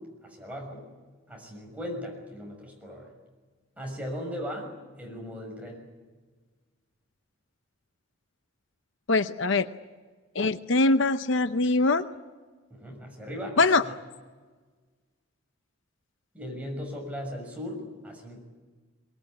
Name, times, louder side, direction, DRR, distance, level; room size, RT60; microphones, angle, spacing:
voice 1, 0.2-0.8 1.3-3.1 3.8-4.7 5.0-5.9 12.7-13.9 16.3-18.4, equal, 5° right, 0 dB, 6.4 m, -38 dB
voice 2, 9.1-9.7 10.3-12.1 13.6-13.8, left 3 dB, 65° left, 11 dB, 0.8 m, -22 dB
23.5 x 20.0 x 9.9 m, 1.4 s
head